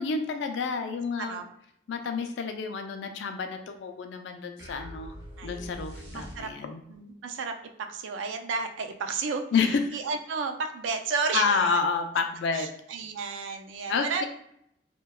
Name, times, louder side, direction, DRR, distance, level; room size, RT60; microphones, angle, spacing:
voice 1, 0.0-1.4 1.9-5.1 5.4-6.8 9.5-9.8 11.3-12.7 13.9-14.2, left 5 dB, 75° left, 6 dB, 0.3 m, -29 dB
sound 1, 4.6-6.9, equal, 70° right, 0.8 m, -43 dB
voice 2, 5.4-5.7 6.1-6.5 6.9-9.4 9.9-11.8 12.5-14.2, right 4 dB, 85° right, 5 dB, 0.3 m, -32 dB
2.7 x 2.2 x 2.2 m, 0.73 s
head